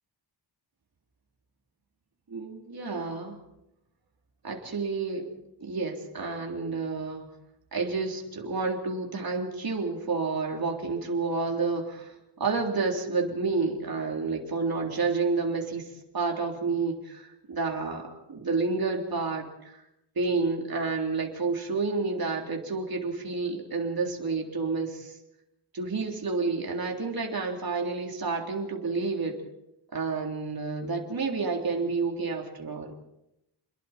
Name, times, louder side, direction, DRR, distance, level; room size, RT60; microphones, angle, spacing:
voice 1, 2.3-3.4 4.4-5.2 5.6-7.3 7.7-15.9 16.1-19.8 20.2-25.2 25.7-29.3 29.9-32.9, right 4 dB, 55° right, 1 dB, 3.7 m, -30 dB
29.5 x 21.5 x 4.5 m, 0.86 s
wide cardioid pair, 125°, 42 cm